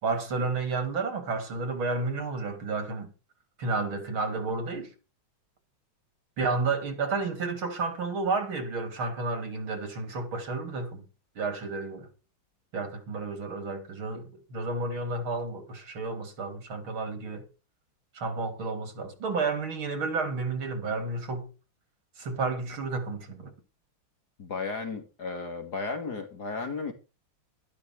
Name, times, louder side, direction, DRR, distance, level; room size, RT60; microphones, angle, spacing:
voice 1, 0.0-3.1 3.6-4.9 6.4-11.0 11.4-12.1 12.7-14.2 14.5-17.4 18.2-21.5 22.2-23.5, right 3 dB, 80° right, 3.8 m, -31 dB
voice 2, 24.4-26.9, left 4 dB, 50° left, 3.0 m, -34 dB
12.5 x 12.0 x 4.8 m
omnidirectional pair, 2.2 m